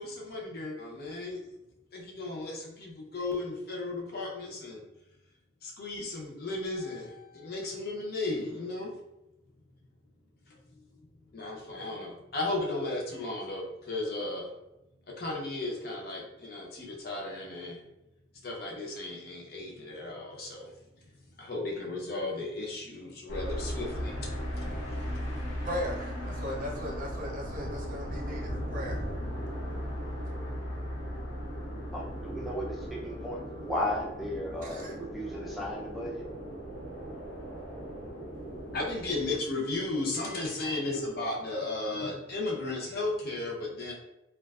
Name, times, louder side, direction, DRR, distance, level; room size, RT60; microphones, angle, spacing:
voice 1, 0.0-1.4 1.9-4.8 5.6-8.9 10.5-10.6 11.3-14.5 15.2-17.8 18.4-20.7 21.4-25.7 38.4-43.9, left 2 dB, 55° left, -2 dB, 0.6 m, -35 dB
sound 1, 23.3-39.4, equal, 85° left, 0.8 m, -37 dB
voice 2, 25.6-29.0 34.6-34.9, equal, 45° right, -2 dB, 0.6 m, -37 dB
voice 3, 31.9-36.2, left 1 dB, ahead, -4 dB, 0.4 m, -35 dB
2.4 x 2.2 x 2.3 m, 0.92 s
head